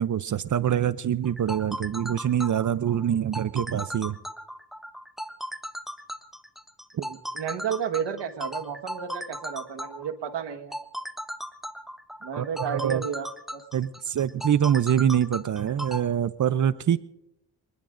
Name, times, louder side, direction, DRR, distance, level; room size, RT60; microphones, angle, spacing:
voice 1, 0.0-4.2 12.4-13.0 13.7-17.0, right 9 dB, 45° right, 16 dB, 0.6 m, -25 dB
sound 1, 1.2-16.0, equal, ahead, 0.9 m, -37 dB
voice 2, 6.9-10.8 12.2-13.6, right 7 dB, 85° right, 6 dB, 1.5 m, -32 dB
26.5 x 20.0 x 2.6 m, 0.81 s
cardioid pair, 90°, 41 cm